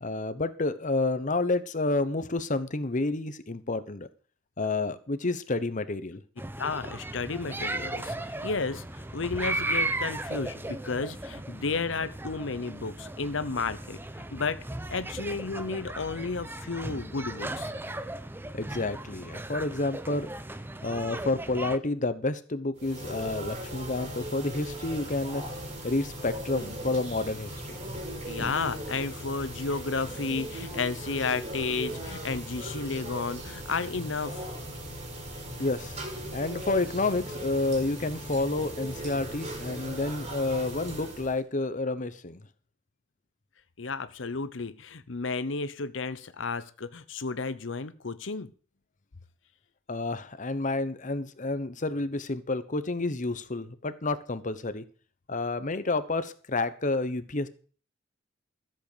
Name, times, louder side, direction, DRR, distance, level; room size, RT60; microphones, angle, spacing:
voice 1, 0.0-4.1 4.6-6.2 18.5-20.3 20.8-25.4 25.8-27.8 35.6-36.0 36.3-42.4 49.9-54.8 55.3-57.5, left 2 dB, 45° left, 1.1 m, -29 dB
sound 1, 6.4-21.8, right 2 dB, 10° right, 0.7 m, -36 dB
voice 2, 6.6-14.6 14.9-17.7 28.3-34.5 43.8-48.5, left 4 dB, 80° left, 0.9 m, -32 dB
sound 2, 22.8-41.4, equal, 40° right, 3.7 m, -38 dB
14.0 x 7.8 x 6.8 m
head